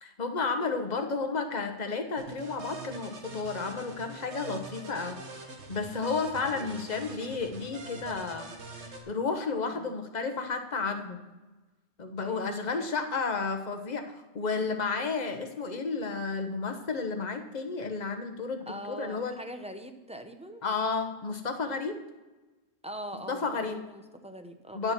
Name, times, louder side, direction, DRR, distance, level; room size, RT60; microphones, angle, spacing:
voice 1, 0.0-5.2 5.7-8.5 9.1-11.2 12.0-19.4 20.6-22.0 23.3-23.8 24.7-24.9, left 4 dB, 40° left, 6 dB, 1.1 m, -32 dB
sound 1, 2.2-9.0, right 3 dB, 75° right, 1.5 m, -44 dB
voice 2, 6.4-6.8 9.7-9.9 12.2-12.9 18.7-20.6 22.8-24.9, right 1 dB, 5° right, 7 dB, 0.6 m, -43 dB
10.5 x 6.8 x 5.9 m, 1.2 s
omnidirectional pair, 1.2 m